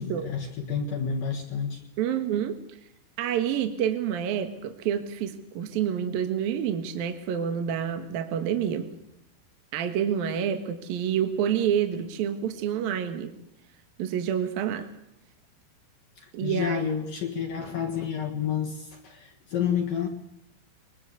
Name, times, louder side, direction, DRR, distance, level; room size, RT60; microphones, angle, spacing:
voice 1, 0.0-1.8 16.2-20.1, left 7 dB, 55° left, 2 dB, 2.7 m, -30 dB
voice 2, 2.0-2.8 3.2-8.9 9.7-13.4 14.0-14.9 16.3-16.8, right 9 dB, 60° right, 8 dB, 2.9 m, -28 dB
23.5 x 21.5 x 8.2 m, 0.76 s
omnidirectional pair, 5.5 m